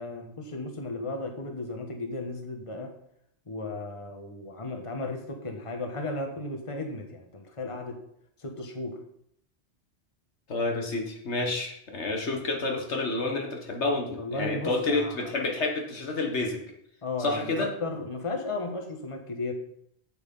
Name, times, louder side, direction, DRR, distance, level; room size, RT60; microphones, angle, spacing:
voice 1, 0.0-2.9 3.5-8.0 8.4-9.0 14.2-15.3 17.0-19.5, left 2 dB, 30° left, 4 dB, 1.4 m, -35 dB
voice 2, 10.5-16.6 17.2-17.7, left 2 dB, 85° left, 2 dB, 1.9 m, -29 dB
8.6 x 8.1 x 5.5 m, 0.71 s
omnidirectional pair, 1.1 m